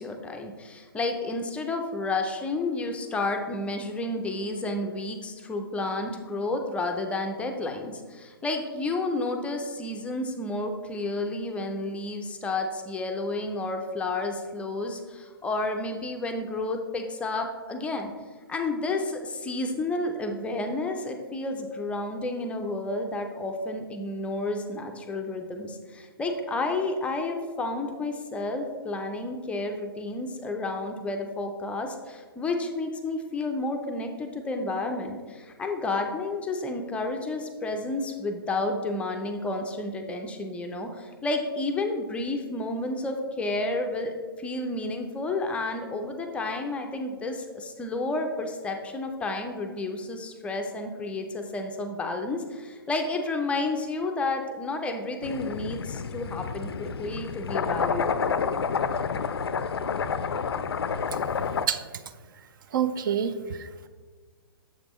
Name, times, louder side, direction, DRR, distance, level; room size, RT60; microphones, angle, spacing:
voice 1, 0.0-18.1 18.5-58.4, left 2 dB, 10° left, 4 dB, 0.4 m, -31 dB
sound 1, 55.2-61.7, left 6 dB, 85° left, 0.4 m, -29 dB
voice 2, 62.7-63.9, right 8 dB, 55° right, 11 dB, 0.4 m, -28 dB
7.3 x 5.1 x 3.0 m, 1.5 s
hypercardioid pair, 130°, 13 cm